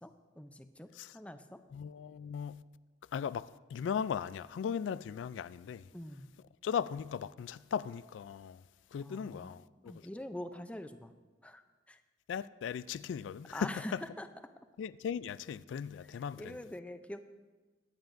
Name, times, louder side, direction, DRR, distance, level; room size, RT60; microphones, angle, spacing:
voice 1, 0.0-1.6 5.9-6.3 9.0-9.6 9.8-11.1 11.4-12.0 13.5-14.3 16.1-17.2, left 1 dB, 5° left, 0.5 m, -45 dB
voice 2, 1.7-2.6 3.1-5.9 6.6-8.6 8.9-10.0 12.3-14.0 14.8-16.6, left 7 dB, 85° left, 0.3 m, -38 dB
23.5 x 9.2 x 2.6 m
head